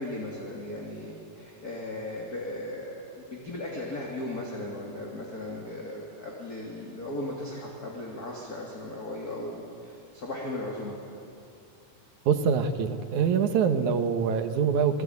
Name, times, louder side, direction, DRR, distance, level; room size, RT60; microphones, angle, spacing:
voice 1, 0.0-11.0, left 1 dB, 25° left, -2 dB, 3.2 m, -37 dB
voice 2, 12.3-15.0, right 6 dB, 65° right, 8 dB, 2.5 m, -24 dB
28.5 x 20.5 x 9.6 m, 2.6 s
omnidirectional pair, 4.0 m